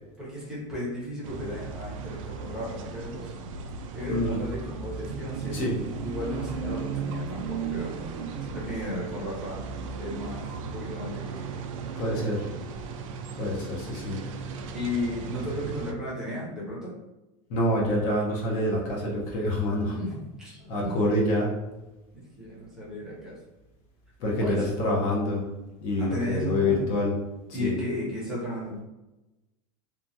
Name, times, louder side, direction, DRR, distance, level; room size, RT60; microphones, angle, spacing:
voice 1, 0.2-3.3 3.9-7.9 8.5-11.5 14.5-16.9 19.9-21.0 22.1-23.4 24.3-24.7 26.0-26.9 27.5-28.8, left 1 dB, 5° right, -7 dB, 0.7 m, -35 dB
sound 1, 1.2-15.9, right 5 dB, 80° right, 0.4 m, -36 dB
voice 2, 4.1-4.4 5.5-5.7 12.0-12.5 13.4-14.2 17.5-20.0 20.6-21.5 24.2-25.5 25.8-27.1 27.6-27.8, left 1 dB, 45° left, -3 dB, 0.7 m, -26 dB
3.0 x 2.2 x 2.6 m, 1.0 s
supercardioid pair, 165°, 17 cm